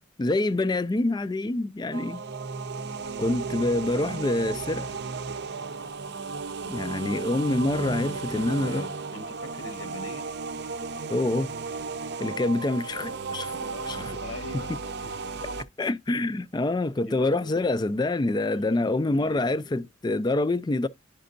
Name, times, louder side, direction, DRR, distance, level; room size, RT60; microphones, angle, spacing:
voice 1, 0.0-2.2 3.2-5.0 6.7-8.9 11.1-11.5 12.2-13.6 13.9-14.2 15.8-20.9, left 2 dB, 20° left, 0.3 m, -26 dB
sound 1, 1.9-15.6, right 4 dB, 55° right, 0.6 m, -34 dB
voice 2, 3.0-3.3 8.1-10.3 13.6-15.1 17.0-17.7 18.5-19.9, left 1 dB, 85° left, 1.2 m, -43 dB
10.0 x 5.3 x 2.5 m
head